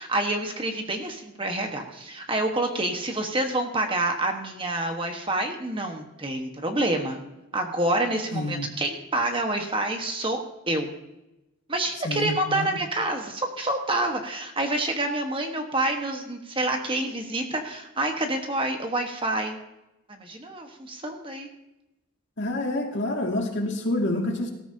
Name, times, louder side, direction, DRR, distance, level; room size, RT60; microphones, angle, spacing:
voice 1, 0.0-7.2 7.5-10.9 11.7-19.6 20.1-21.5, right 2 dB, 25° right, 3 dB, 1.3 m, -27 dB
voice 2, 8.3-8.7 12.0-12.8 22.4-24.5, left 1 dB, 55° left, 1 dB, 2.2 m, -28 dB
18.5 x 13.5 x 2.8 m, 0.94 s
head